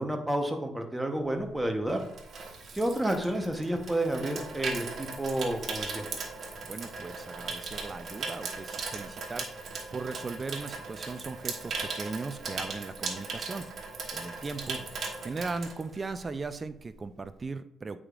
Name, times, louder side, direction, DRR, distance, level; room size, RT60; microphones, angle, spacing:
voice 1, 0.0-2.0 2.7-6.1, right 1 dB, 10° right, 3 dB, 1.0 m, -30 dB
Water tap faucet / Sink (filling or washing), 1.4-16.4 16.7-17.0, right 4 dB, 55° right, 1.2 m, -38 dB
voice 2, 6.6-13.7 14.1-14.8 15.2-18.0, right 4 dB, 30° right, 11 dB, 0.5 m, -38 dB
8.7 x 4.9 x 2.5 m, 0.74 s
cardioid pair, 90°, 0 cm